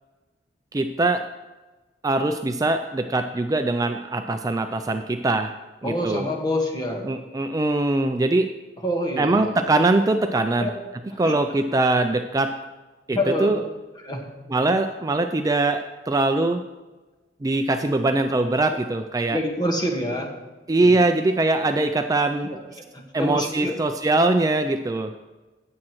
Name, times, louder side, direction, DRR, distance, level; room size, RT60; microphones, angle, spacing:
voice 1, 0.7-1.3 2.0-6.2 7.0-8.5 9.2-10.7 11.2-12.6 13.1-13.6 14.5-16.7 17.4-19.4 20.7-22.6 23.1-25.1, right 2 dB, 20° right, 7 dB, 0.3 m, -22 dB
voice 2, 5.8-7.1 8.8-9.6 10.6-10.7 11.2-11.4 13.1-13.5 14.0-14.3 18.7-18.8 19.3-20.3 20.8-20.9 22.5-23.8, left 1 dB, 25° left, 2 dB, 1.5 m, -27 dB
17.0 x 7.5 x 3.1 m, 1.2 s
head